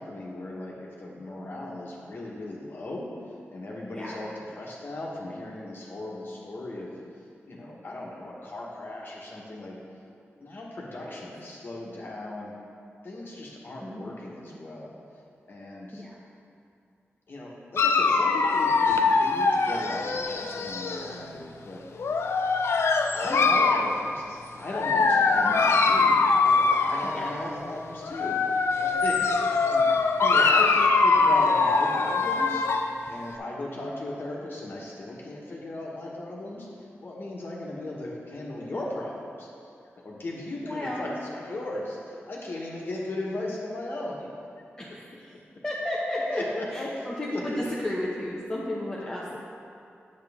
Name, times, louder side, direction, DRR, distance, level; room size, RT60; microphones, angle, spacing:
voice 1, 0.0-3.1 3.5-6.9 7.5-9.8 10.4-12.5 13.0-14.9 15.5-16.0 17.3-21.9 23.1-32.7 33.1-39.5 40.0-44.3 46.3-47.6, left 1 dB, 55° left, -3 dB, 1.4 m, -37 dB
voice 2, 3.9-4.2 10.9-11.2 13.8-14.1 15.9-16.2 25.4-25.7 27.0-27.3 30.2-30.6 40.6-41.1 44.8-45.3 45.6-46.4 46.7-49.4, left 1 dB, 15° left, -5 dB, 0.8 m, -33 dB
Dog, 17.8-21.2 22.0-23.9 24.7-27.3 28.0-32.9, left 4 dB, 70° left, 0.5 m, -23 dB
9.2 x 7.5 x 3.6 m, 2.5 s
wide cardioid pair, 145°, 4 cm